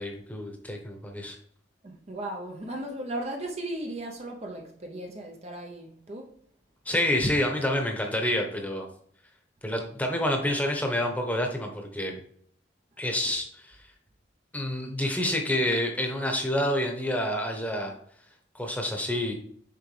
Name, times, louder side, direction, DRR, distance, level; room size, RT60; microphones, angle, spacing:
voice 1, 0.0-1.4 6.9-8.9 9.6-12.2 13.0-13.8 14.5-17.9 18.5-19.3, left 1 dB, 10° left, 1.0 m, -28 dB
voice 2, 1.8-6.3 13.2-13.3, right 1 dB, 35° right, 0.7 m, -36 dB
6.8 x 4.8 x 3.3 m
head